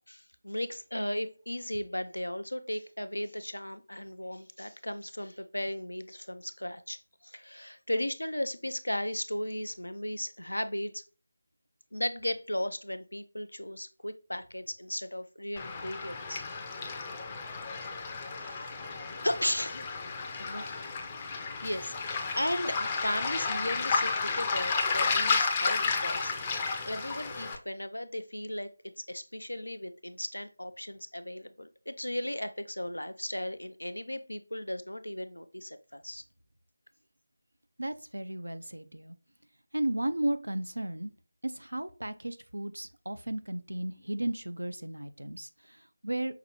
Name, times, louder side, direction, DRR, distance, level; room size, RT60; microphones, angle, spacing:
voice 1, 0.1-11.0 11.9-16.4 18.3-18.8 19.2-19.9 20.4-21.0 21.6-26.3 26.8-28.7 29.0-36.2, left 1 dB, 80° left, 0.5 m, -36 dB
Waves surf, 15.6-27.6, left 4 dB, 20° left, 0.6 m, -32 dB
voice 2, 37.8-39.2 39.7-41.1 41.4-46.4, right 1 dB, 75° right, 0.5 m, -34 dB
5.8 x 2.8 x 2.9 m
figure-of-eight pair, 160°, 0 cm